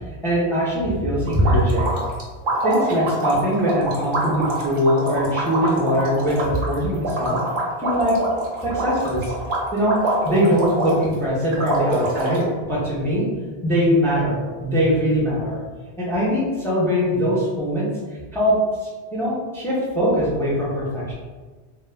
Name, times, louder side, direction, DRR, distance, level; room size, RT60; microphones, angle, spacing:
voice 1, 0.2-2.0 2.6-7.4 7.8-8.2 8.6-9.3 9.7-10.0 10.2-13.3 13.6-15.6 16.0-17.9 18.3-18.5 18.8-21.1, equal, 5° left, -7 dB, 0.4 m, -21 dB
sound 1, 1.3-11.1 11.5-12.5, right 1 dB, 55° right, 0.7 m, -25 dB
2.2 x 2.1 x 3.2 m, 1.4 s
omnidirectional pair, 1.2 m